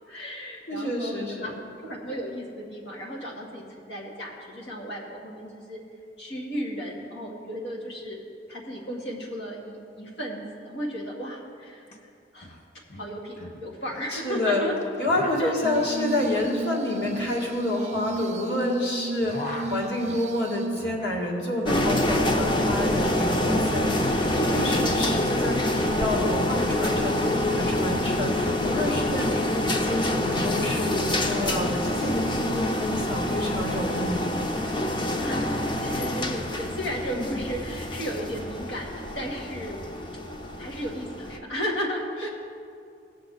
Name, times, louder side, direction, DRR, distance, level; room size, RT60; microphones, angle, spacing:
voice 1, 0.1-1.5 1.8-5.8 6.2-8.2 8.5-11.9 12.3-12.6 12.9-14.8 15.4-15.5 35.2-39.8 40.6-42.3, equal, 90° left, -2 dB, 2.2 m, -34 dB
voice 2, 0.7-1.5 14.1-14.7 15.0-34.5 37.1-37.4, left 1 dB, 70° left, -2 dB, 2.1 m, -29 dB
sound 1, 11.9-12.0 12.2-12.6 12.9-14.1 14.8-18.7 19.0-21.3 21.5-22.5, left 1 dB, 45° left, 1.3 m, -40 dB
Glass, 15.6-20.8, right 2 dB, 40° right, 0.3 m, -33 dB
sound 2, 21.7-41.4, left 1 dB, 25° left, 0.7 m, -26 dB
18.0 x 6.6 x 4.0 m, 2.4 s
head